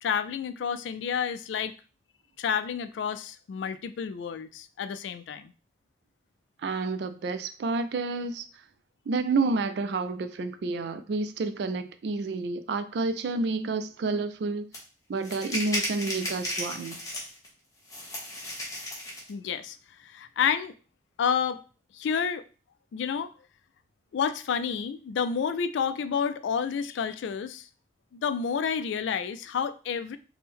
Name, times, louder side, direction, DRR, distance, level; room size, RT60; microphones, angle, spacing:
voice 1, 0.0-1.7 2.4-5.5 19.3-19.8 20.0-20.7 21.2-21.6 21.9-22.4 22.9-23.3 24.1-27.6 28.1-30.2, left 7 dB, 85° left, 11 dB, 0.3 m, -29 dB
voice 2, 6.6-8.4 9.1-14.7 15.1-17.0, right 3 dB, 70° right, 10 dB, 0.3 m, -29 dB
sound 1, 14.7-14.8 15.2-17.5 17.9-19.3, left 1 dB, 20° left, 0.9 m, -34 dB
3.6 x 2.1 x 4.2 m, 0.36 s
head